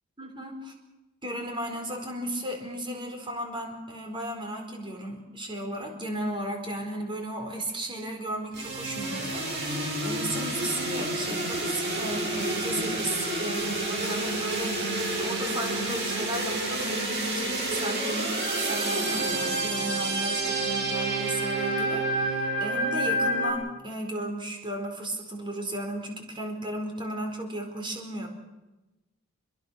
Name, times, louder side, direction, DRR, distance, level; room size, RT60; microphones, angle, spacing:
voice 1, 0.2-0.7 1.2-28.3, right 1 dB, 25° right, 3 dB, 4.5 m, -35 dB
sound 1, 8.5-23.5, right 2 dB, 55° right, 7.6 m, -29 dB
27.5 x 23.0 x 6.5 m, 1.0 s
head